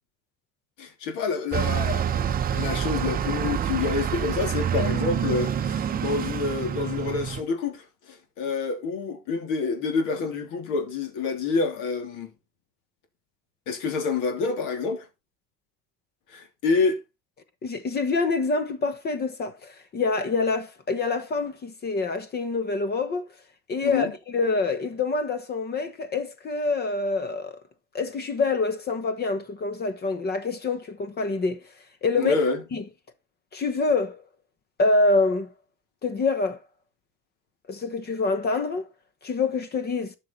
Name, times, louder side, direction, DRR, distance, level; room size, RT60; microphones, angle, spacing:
voice 1, 0.8-12.3 13.7-15.0 16.3-17.0 23.8-24.1 32.2-32.6, left 4 dB, 65° left, 3.2 m, -28 dB
Bus, 1.5-7.4, right 8 dB, 25° right, 0.7 m, -27 dB
voice 2, 17.6-23.3 23.7-27.6 27.9-31.6 32.0-32.4 32.7-32.8 33.5-34.2 34.8-35.5 36.0-36.6 37.7-38.9 39.2-40.2, left 3 dB, 30° left, 1.0 m, -26 dB
12.5 x 6.2 x 4.1 m
cardioid pair, 160°, 34 cm